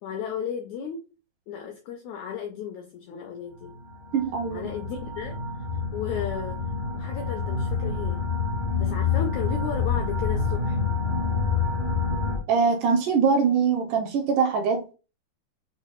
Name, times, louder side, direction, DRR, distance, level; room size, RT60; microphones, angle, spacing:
voice 1, 0.0-1.0 1.5-3.7 4.5-5.4 5.9-6.6 6.9-8.2 8.8-10.8, left 7 dB, 80° left, 1.6 m, -34 dB
sound 1, 3.5-12.4, left 5 dB, 55° left, 0.7 m, -27 dB
voice 2, 4.1-4.7 12.5-14.9, right 5 dB, 80° right, 2.0 m, -23 dB
6.1 x 2.0 x 4.0 m
omnidirectional pair, 4.1 m